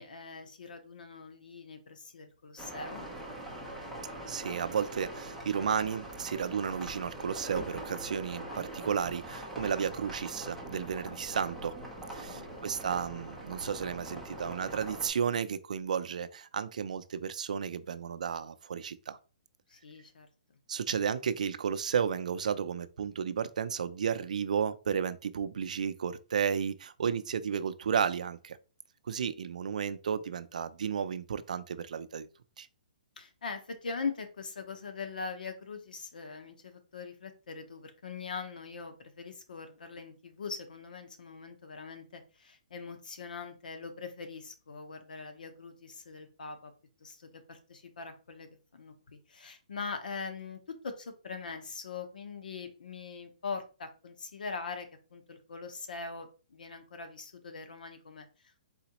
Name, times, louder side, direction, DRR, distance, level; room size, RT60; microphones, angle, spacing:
voice 1, 0.0-3.1 12.3-12.9 19.7-20.3 33.2-46.7 47.0-48.9 49.3-58.6, left 4 dB, 85° left, 0.9 m, -42 dB
sound 1, 2.6-15.1, right 1 dB, ahead, 0.6 m, -43 dB
voice 2, 4.3-11.8 12.1-19.2 20.7-28.6 29.1-32.3 32.6-32.7, right 7 dB, 60° right, 0.4 m, -33 dB
4.1 x 3.9 x 2.9 m
hypercardioid pair, 175°, 5 cm